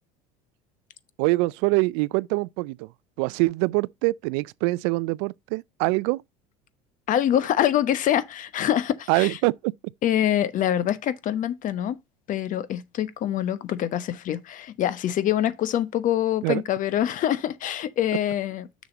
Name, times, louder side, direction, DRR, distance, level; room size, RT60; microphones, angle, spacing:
voice 1, 1.2-2.9 3.2-6.2 9.1-9.7 16.4-16.6, right 24 dB, 70° right, 0.4 m, -24 dB
voice 2, 7.1-9.4 10.0-12.0 12.3-18.7, left 11 dB, 50° left, 1.0 m, -25 dB
6.7 x 6.3 x 4.0 m
hypercardioid pair, 85°, 17 cm